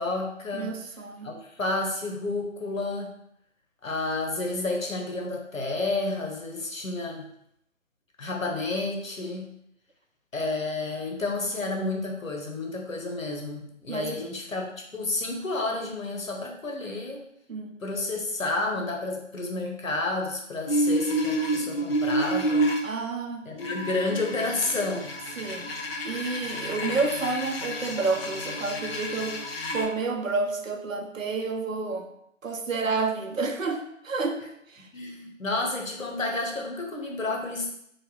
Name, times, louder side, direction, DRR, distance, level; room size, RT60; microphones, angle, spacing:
voice 1, 0.0-0.7 1.2-3.1 3.8-7.3 8.2-9.5 10.3-17.2 17.8-22.7 23.5-25.2 34.9-37.7, left 2 dB, 85° left, 1 dB, 1.0 m, -30 dB
voice 2, 0.5-1.3 13.9-14.1 17.5-17.7 22.8-23.5 25.4-25.7 26.0-29.4 29.7-32.1 32.4-34.9, right 3 dB, 85° right, 4 dB, 0.7 m, -30 dB
sound 1, 20.7-22.8 23.6-29.8, right 1 dB, 50° left, 0.5 m, -29 dB
3.3 x 2.1 x 3.8 m, 0.74 s
figure-of-eight pair, 155°, 39 cm